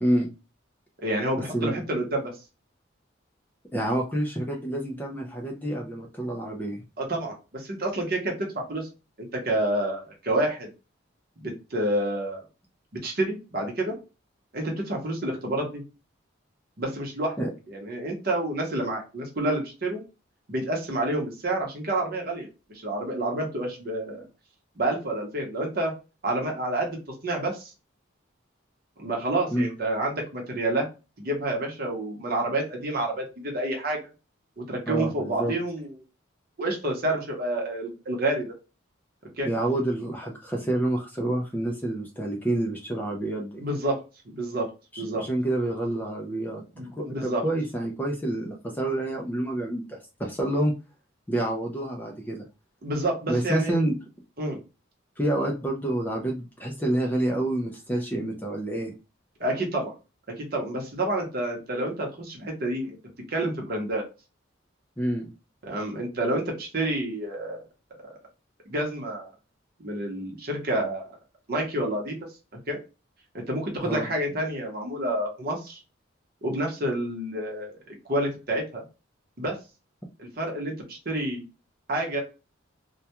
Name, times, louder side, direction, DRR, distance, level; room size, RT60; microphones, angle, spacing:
voice 1, 0.0-0.3 1.5-1.8 3.7-6.8 17.4-17.5 29.5-29.7 34.9-35.5 39.4-43.6 44.9-50.7 51.3-52.4 53.3-53.9 54.4-54.5 55.2-58.9 65.0-65.3 73.8-74.1, right 1 dB, 10° left, 0 dB, 0.3 m, -28 dB
voice 2, 1.0-2.3 7.0-8.9 9.2-10.7 11.4-12.4 13.0-14.0 14.5-15.8 16.8-17.4 17.7-20.0 20.5-24.2 24.8-25.9 26.2-27.7 29.0-30.9 31.2-34.0 34.6-36.0 36.6-38.5 39.4-39.5 43.6-44.0 44.3-44.7 45.0-45.3 46.8-47.4 52.8-53.7 54.4-54.6 59.4-59.9 60.4-62.9 63.3-64.0 65.6-67.6 68.7-69.3 69.8-71.0 71.5-72.2 72.7-72.8 73.3-75.8 76.4-77.8 78.1-78.8 79.4-79.6 80.2-81.4 81.9-82.2, right 1 dB, 50° right, 1 dB, 0.8 m, -29 dB
2.2 x 2.2 x 2.8 m, 0.30 s
head